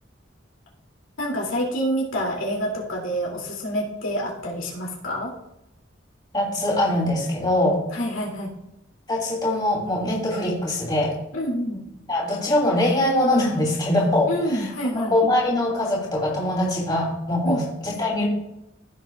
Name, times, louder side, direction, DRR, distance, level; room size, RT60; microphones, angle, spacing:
voice 1, 1.2-5.3 7.9-8.5 11.3-11.8 14.3-15.1 17.4-17.6, equal, 90° left, -2 dB, 2.6 m, -27 dB
voice 2, 6.3-7.8 9.1-11.2 12.1-14.7 14.9-18.2, left 1 dB, 20° left, -4 dB, 3.0 m, -22 dB
16.0 x 6.8 x 2.4 m, 0.87 s
head